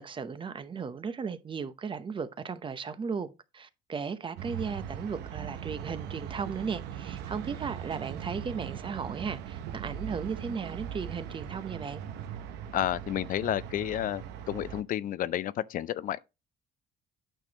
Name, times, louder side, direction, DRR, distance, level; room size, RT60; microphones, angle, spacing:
voice 1, 0.0-12.0, right 5 dB, 30° right, 0.7 m, -36 dB
sound 1, 4.4-14.8, right 9 dB, 90° right, 0.8 m, -40 dB
voice 2, 12.7-16.2, left 12 dB, 55° left, 0.4 m, -31 dB
9.0 x 6.0 x 2.9 m
cardioid pair, 110°, 17 cm